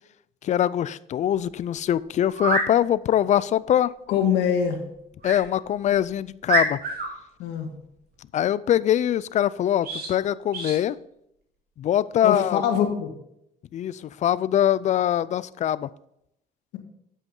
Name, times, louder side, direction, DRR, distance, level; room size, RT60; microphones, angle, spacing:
voice 1, 0.4-3.9 5.2-6.8 8.3-11.0 11.8-12.6 13.7-15.9, left 11 dB, 45° left, 19 dB, 0.4 m, -23 dB
sound 1, 1.4-1.5 2.3-2.7 5.2-5.4 5.9-6.0 6.5-7.1 9.8-10.1 10.5-10.8, right 2 dB, 60° right, 2.9 m, -26 dB
voice 2, 4.1-4.8 7.4-7.7 12.2-13.1, left 8 dB, 90° left, 4 dB, 1.7 m, -23 dB
9.0 x 7.8 x 3.8 m, 0.77 s
cardioid pair, 110°, 17 cm